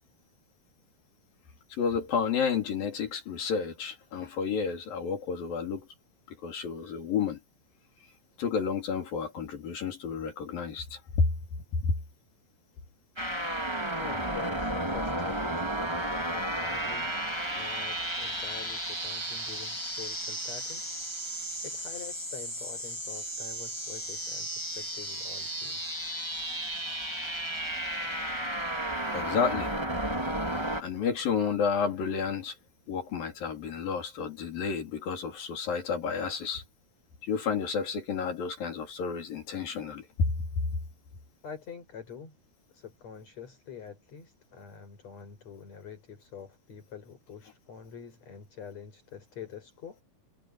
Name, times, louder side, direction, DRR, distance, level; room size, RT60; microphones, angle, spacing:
voice 1, 1.7-5.9 6.3-7.4 8.4-11.3 11.7-11.9 29.0-29.7 30.8-32.6 32.9-36.6 37.2-40.1, left 6 dB, 75° left, 5.4 m, -31 dB
sound 1, 13.2-30.8, right 1 dB, 10° right, 3.2 m, -33 dB
voice 2, 14.0-16.0 16.3-17.1 17.6-20.9 21.6-26.0 41.4-42.4 42.7-50.0, left 7 dB, 45° left, 6.3 m, -46 dB
omnidirectional pair, 4.1 m